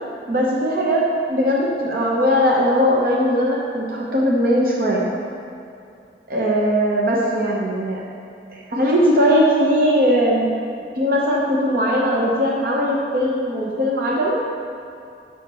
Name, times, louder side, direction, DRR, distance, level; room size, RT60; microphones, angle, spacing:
voice 1, 0.3-5.1 6.3-8.0 8.5-10.5 11.0-14.5, equal, 50° right, -4 dB, 0.8 m, -19 dB
5.7 x 5.0 x 6.7 m, 2.5 s
head